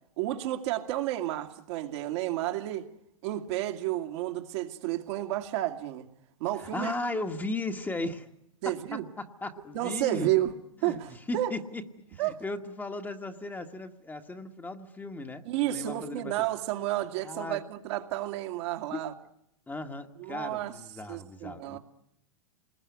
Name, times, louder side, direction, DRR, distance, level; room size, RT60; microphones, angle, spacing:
voice 1, 0.2-2.9 3.2-6.1 6.4-6.9 8.6-9.0 9.7-10.5 10.8-11.5 12.2-12.4 15.4-19.1 20.2-20.7 21.1-21.8, right 14 dB, 55° right, 2.4 m, -31 dB
voice 2, 6.5-8.3 8.6-10.3 10.8-11.0 11.3-16.5 17.2-17.6 18.9-19.0 19.7-21.8, left 2 dB, 10° left, 1.7 m, -36 dB
28.0 x 21.0 x 9.6 m
hypercardioid pair, 115°, 17 cm